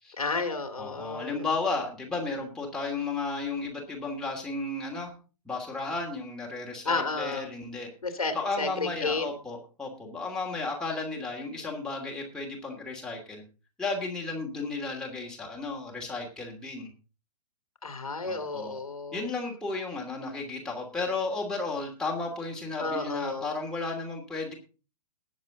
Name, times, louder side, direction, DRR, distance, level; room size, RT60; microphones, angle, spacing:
voice 1, 0.2-1.5 6.8-7.5 8.0-9.3 17.8-19.3 22.8-23.5, left 3 dB, 70° left, 7 dB, 2.6 m, -32 dB
voice 2, 0.8-5.1 5.4-7.9 8.3-13.4 13.8-16.9 18.2-18.7 19.1-24.5, left 3 dB, 5° left, -2 dB, 2.8 m, -33 dB
19.5 x 7.4 x 3.9 m, 0.35 s
figure-of-eight pair, 115°, 19 cm